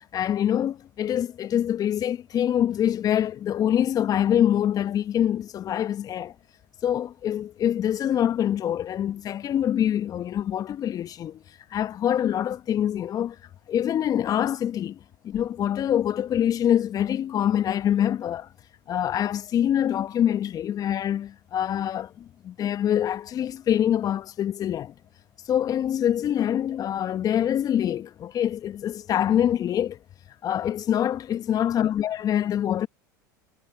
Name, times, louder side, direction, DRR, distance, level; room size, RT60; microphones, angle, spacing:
voice 1, 0.1-6.3 6.8-11.4 11.7-13.4 13.7-18.5 18.9-24.9 25.5-30.0 30.4-32.9, left 10 dB, 35° left, 1.2 m, -25 dB
hypercardioid pair, 85°, 10 cm